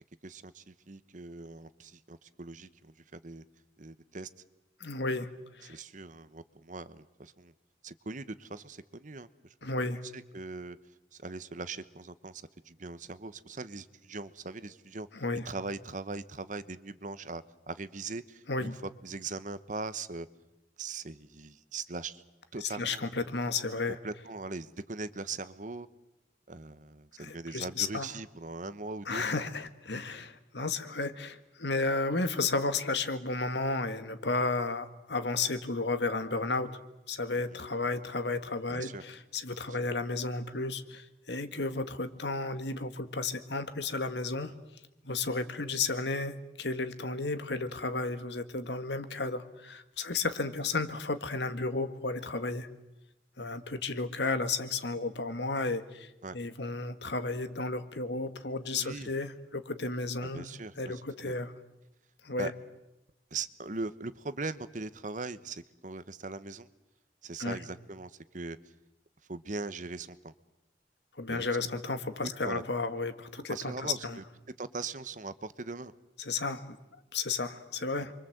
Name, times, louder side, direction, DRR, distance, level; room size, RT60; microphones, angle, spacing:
voice 1, 0.2-3.4 3.8-4.3 5.7-7.5 7.8-9.3 10.1-10.8 11.1-15.1 15.4-18.7 19.0-20.3 20.8-22.2 22.5-23.0 24.0-25.9 26.5-29.2 38.7-39.0 56.2-56.4 58.7-59.1 60.2-61.3 62.4-62.5 63.3-66.7 67.2-68.6 69.3-70.3 71.3-71.4 72.2-72.6 73.5-74.2 74.6-75.9, right 3 dB, 45° right, 14 dB, 1.1 m, -40 dB
voice 2, 4.8-5.3 5.5-5.8 9.6-10.0 15.1-15.5 18.5-18.7 22.6-24.0 27.2-28.1 29.0-36.8 37.1-44.5 45.0-52.7 53.4-60.5 60.8-61.5 62.2-62.5 67.4-67.6 71.2-74.2 76.2-78.1, left 3 dB, 70° left, 10 dB, 1.8 m, -33 dB
28.5 x 24.0 x 8.0 m, 0.92 s
head